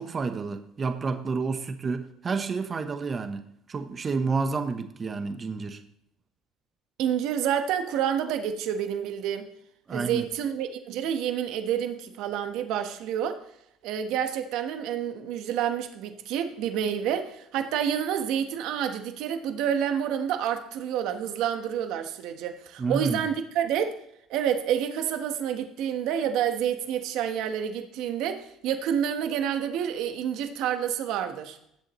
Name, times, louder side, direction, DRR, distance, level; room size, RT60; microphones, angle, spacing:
voice 1, 0.0-5.8 9.9-10.3 22.8-23.2, right 4 dB, 30° right, 8 dB, 1.0 m, -30 dB
voice 2, 7.0-9.5 9.9-13.4 13.8-24.0 24.3-31.6, right 9 dB, 70° right, 7 dB, 1.2 m, -28 dB
18.5 x 7.8 x 3.1 m, 0.71 s
cardioid pair, 110°, 0 cm